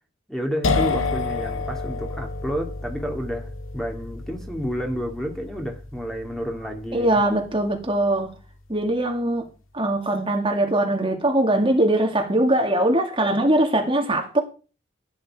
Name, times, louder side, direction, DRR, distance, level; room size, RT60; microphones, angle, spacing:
voice 1, 0.3-7.2, equal, ahead, 2.5 m, -30 dB
sound 1, 0.6-8.2, left 3 dB, 80° left, 1.9 m, -30 dB
voice 2, 6.9-8.3 8.7-9.5 9.7-14.4, right 1 dB, 25° right, 2.2 m, -21 dB
16.0 x 10.0 x 4.9 m
head